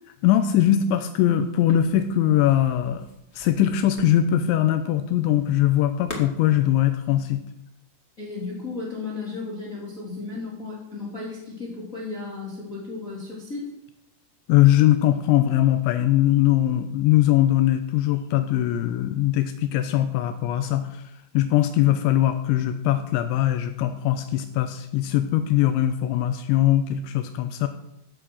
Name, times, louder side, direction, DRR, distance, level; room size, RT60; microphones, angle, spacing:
voice 1, 0.2-3.1 3.4-7.4 14.5-21.0 21.3-27.7, left 12 dB, 85° left, 8 dB, 3.0 m, -21 dB
sound 1, 1.6-6.9, left 3 dB, 50° left, 0.7 m, -43 dB
voice 2, 8.2-13.7, left 3 dB, 20° left, -4 dB, 2.8 m, -34 dB
15.0 x 7.7 x 6.3 m, 0.84 s
omnidirectional pair, 5.4 m